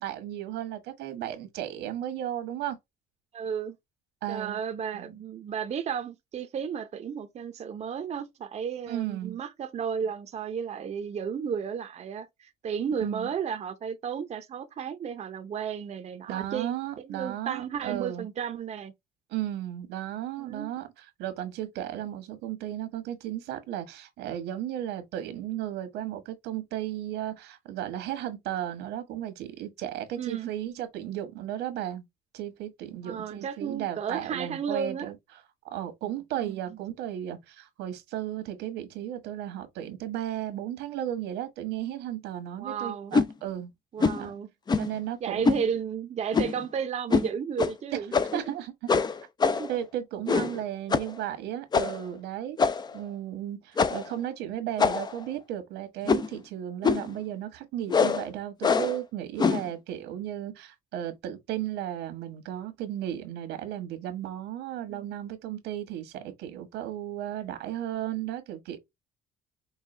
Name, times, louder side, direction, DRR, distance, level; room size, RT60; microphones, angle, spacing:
voice 1, 0.0-2.8 4.2-4.6 4.9-5.1 8.9-9.4 13.0-13.3 16.3-18.3 19.3-32.0 32.3-35.1 35.7-43.7 44.2-44.3 44.8-45.5 47.9-48.0 48.3-48.7 49.7-52.6 52.9-68.8, right 12 dB, 85° right, 1.4 m, -35 dB
voice 2, 3.3-3.7 4.3-18.9 20.4-20.7 30.2-30.5 33.0-35.1 36.4-36.8 42.6-43.1 43.9-44.5 45.2-48.6 49.4-49.7 50.3-50.4 64.9-65.1, right 7 dB, 40° right, 0.7 m, -33 dB
sound 1, 43.1-43.3 44.0-44.2 44.7-45.0 45.4-45.6 46.3-46.6 47.1-47.3 47.6-47.7 48.1-48.5 48.9-49.8 50.3-50.6 50.9-51.1 51.7-52.0 52.6-53.0 53.8-54.1 54.8-55.2 56.0-56.4 56.8-57.1 57.9-58.2 58.6-59.0 59.4-59.7, left 5 dB, 25° left, 0.5 m, -24 dB
5.5 x 2.3 x 3.3 m
cardioid pair, 110°, 17 cm